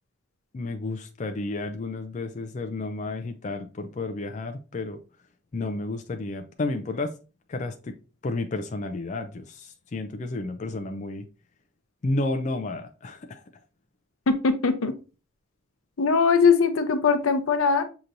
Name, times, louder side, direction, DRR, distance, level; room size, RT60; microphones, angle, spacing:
voice 1, 0.5-5.0 5.5-7.2 7.5-8.0 8.2-11.3 12.0-13.4, left 2 dB, 35° left, 0.4 m, -31 dB
voice 2, 14.3-14.9 16.0-17.8, left 5 dB, 80° left, 0.6 m, -21 dB
6.5 x 3.0 x 2.5 m
head